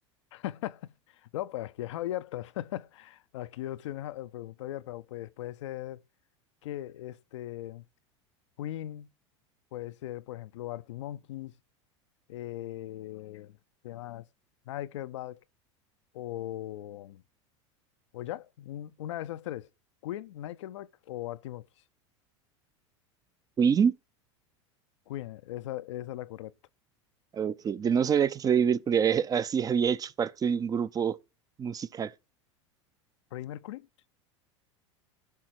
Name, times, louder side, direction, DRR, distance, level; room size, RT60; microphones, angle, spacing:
voice 1, 0.3-6.0 6.6-7.8 8.6-9.1 9.7-11.5 12.3-13.6 13.8-14.2 14.7-15.4 16.1-17.2 18.1-19.7 20.0-21.6 25.1-26.5 33.3-33.9, left 13 dB, 75° left, 0.4 m, -38 dB
voice 2, 23.6-23.9 27.3-31.2 31.6-32.1, right 7 dB, 25° right, 0.5 m, -26 dB
12.0 x 5.7 x 4.6 m
hypercardioid pair, 90°, 15 cm